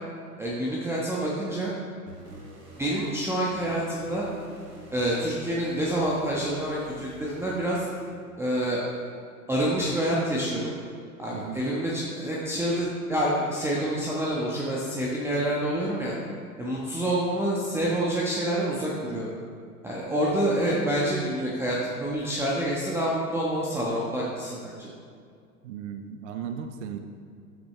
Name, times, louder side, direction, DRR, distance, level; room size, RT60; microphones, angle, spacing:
voice 1, 0.4-1.7 2.8-4.2 4.9-7.9 8.4-8.8 9.5-10.7 11.2-16.1 16.6-19.3 19.8-24.9, right 1 dB, 5° right, -5 dB, 1.3 m, -27 dB
sound 1, 2.1-8.5, right 1 dB, 85° right, 2.2 m, -47 dB
voice 2, 11.3-11.7 25.6-27.0, right 8 dB, 50° right, 6 dB, 0.9 m, -36 dB
14.5 x 8.8 x 3.3 m, 2.2 s
figure-of-eight pair, 95°, 47 cm